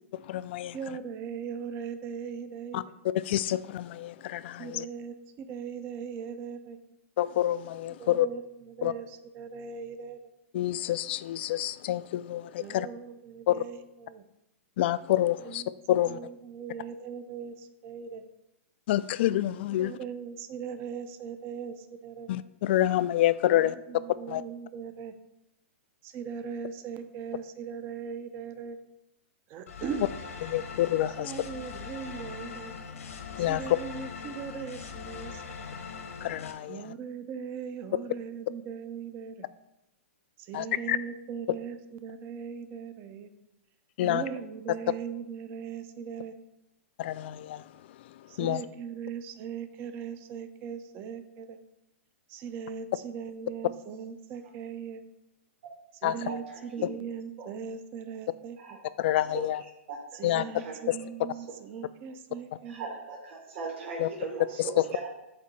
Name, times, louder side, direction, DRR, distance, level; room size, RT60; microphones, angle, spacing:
voice 1, 0.1-1.0 2.7-2.8 3.1-4.9 7.2-8.3 8.8-8.9 10.5-12.9 13.5-13.6 14.8-16.2 18.9-20.0 22.3-23.8 24.3-24.4 30.4-31.3 33.4-33.8 36.2-36.9 40.5-41.0 44.0-44.2 47.0-47.7 48.0-48.6 56.0-56.3 59.0-59.6 60.2-60.4 60.9-61.0 64.0-64.1 64.6-64.9, left 13 dB, 50° left, 16 dB, 0.4 m, -28 dB
voice 2, 0.7-2.8 4.6-6.8 8.0-8.4 8.7-9.1 9.3-10.2 12.6-14.2 15.4-15.6 16.0-18.2 19.8-22.3 23.5-25.1 26.0-28.8 29.5-30.1 31.2-32.7 33.5-35.7 36.7-39.4 40.4-43.3 44.0-46.3 48.3-51.6 52.3-55.0 56.0-58.6 60.1-62.9, right 7 dB, 30° right, 9 dB, 0.6 m, -39 dB
sound 1, 29.7-36.5, left 5 dB, 90° left, 1.3 m, -41 dB
voice 3, 60.3-60.7 62.7-64.6 64.9-65.1, right 4 dB, 50° right, -4 dB, 2.0 m, -38 dB
8.4 x 2.8 x 6.1 m, 0.91 s
hypercardioid pair, 140°, 7 cm